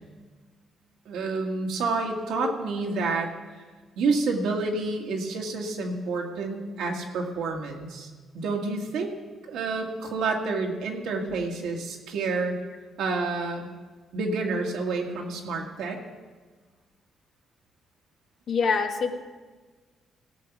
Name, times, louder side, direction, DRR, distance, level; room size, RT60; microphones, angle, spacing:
voice 1, 1.1-3.3 4.0-8.1 8.3-9.1 9.4-12.6 13.0-13.7 14.1-16.0, right 3 dB, 85° right, 1 dB, 1.9 m, -29 dB
voice 2, 18.5-19.1, left 5 dB, 60° left, 5 dB, 1.2 m, -25 dB
17.5 x 6.7 x 6.0 m, 1.4 s
cardioid pair, 90°, 0 cm